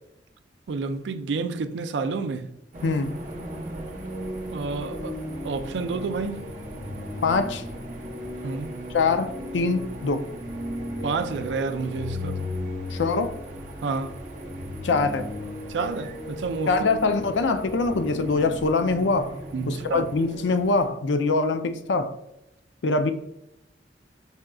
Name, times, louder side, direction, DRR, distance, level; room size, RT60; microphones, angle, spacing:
voice 1, 0.7-2.5 4.5-5.2 5.4-6.5 8.4-8.7 11.0-12.5 13.8-14.2 15.7-16.7 19.5-20.0, right 4 dB, 80° right, 0.4 m, -29 dB
sound 1, 2.7-20.9, equal, 45° right, 0.7 m, -36 dB
voice 2, 2.8-3.2 7.2-7.6 8.9-10.3 12.9-13.3 14.8-15.3 16.7-19.4 19.7-22.2 22.8-23.1, left 3 dB, 85° left, 0.4 m, -23 dB
4.2 x 3.7 x 2.3 m
head